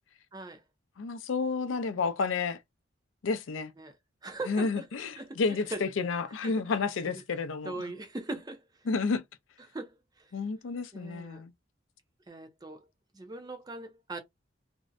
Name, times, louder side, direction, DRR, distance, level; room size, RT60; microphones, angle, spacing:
voice 1, 0.3-0.6 3.8-4.0 4.2-4.9 5.2-5.8 6.3-7.2 7.6-8.9 9.6-10.3 10.9-11.4 12.3-12.9 13.1-14.2, right 2 dB, 20° right, 0.5 m, -41 dB
voice 2, 1.0-2.6 3.2-3.7 4.5-7.7 8.9-9.2 10.3-11.5, left 4 dB, 80° left, 0.4 m, -30 dB
2.6 x 2.1 x 2.4 m
head